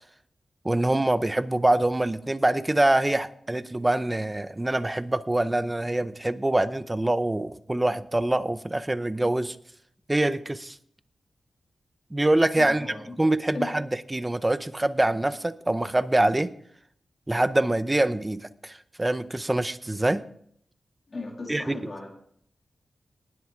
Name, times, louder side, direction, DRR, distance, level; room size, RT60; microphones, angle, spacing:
voice 1, 0.6-9.6 10.1-10.8 12.1-12.9 13.2-16.5 17.3-20.2 21.5-21.8, right 1 dB, 15° right, 0.6 m, -25 dB
voice 2, 12.6-13.2 13.5-13.8 21.1-22.1, left 3 dB, 40° left, 2.6 m, -37 dB
19.5 x 7.9 x 3.6 m
wide cardioid pair, 95°, 0 cm